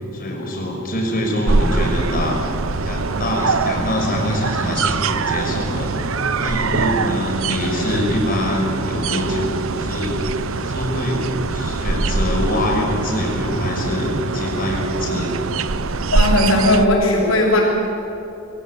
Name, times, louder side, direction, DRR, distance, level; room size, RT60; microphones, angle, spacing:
voice 1, 0.1-2.4 2.8-5.9 6.4-10.2 10.6-15.3, left 1 dB, 45° left, -1 dB, 5.9 m, -24 dB
sound 1, 1.5-16.9, right 3 dB, 70° right, 0.8 m, -23 dB
voice 2, 16.1-17.6, left 1 dB, 80° left, -6 dB, 6.6 m, -16 dB
23.0 x 18.0 x 8.4 m, 2.9 s
head